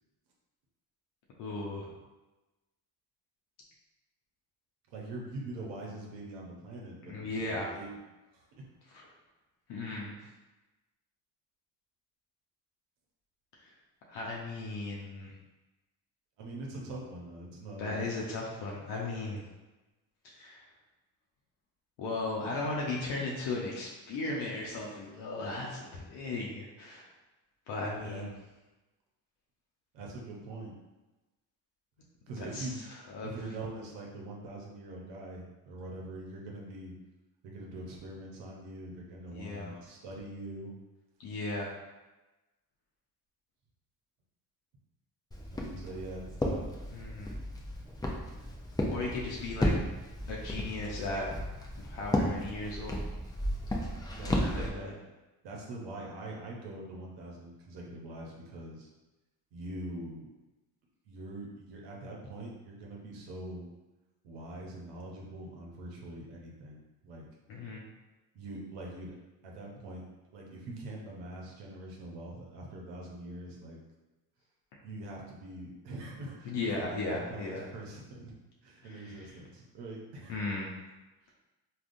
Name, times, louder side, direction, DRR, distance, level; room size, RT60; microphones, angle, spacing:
voice 1, 1.4-1.9 7.1-7.7 8.9-9.1 9.7-10.2 13.6-13.7 14.1-15.3 17.8-19.4 20.2-20.6 22.0-27.1 27.7-28.3 32.4-32.7 33.1-33.3 39.3-39.7 41.2-41.7 46.9-47.4 48.9-49.7 50.3-51.3 51.7-53.0 54.4-54.9 67.5-67.8 76.4-77.7 78.8-79.3 80.3-80.8, left 2 dB, 85° left, -3 dB, 0.7 m, -36 dB
voice 2, 4.9-8.0 8.3-8.4 16.4-18.0 27.9-28.3 29.9-30.7 32.3-32.8 33.2-36.9 37.4-40.7 45.5-46.7 53.7-53.9 54.1-54.9 55.4-58.9 59.5-60.3 61.1-63.7 64.2-67.2 68.3-69.2 69.4-70.0 70.3-73.8 74.8-76.8 77.1-78.4 78.6-80.3, right 2 dB, 90° right, -2 dB, 0.8 m, -43 dB
Walk footsteps, 45.3-54.7, left 1 dB, 10° left, 0.4 m, -34 dB
3.5 x 2.4 x 2.5 m, 1.1 s
supercardioid pair, 70°, 40 cm